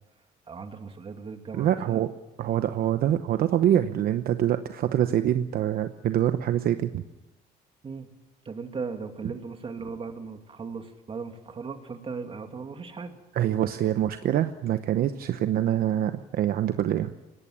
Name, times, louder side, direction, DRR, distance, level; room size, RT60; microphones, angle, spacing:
voice 1, 0.5-2.1 7.8-8.1 8.4-13.2, right 5 dB, 30° right, 6 dB, 2.6 m, -37 dB
voice 2, 1.5-2.1 2.4-7.0 13.3-17.1, right 11 dB, 60° right, 9 dB, 0.9 m, -25 dB
22.5 x 18.0 x 7.4 m, 1.0 s
cardioid pair, 110°, 17 cm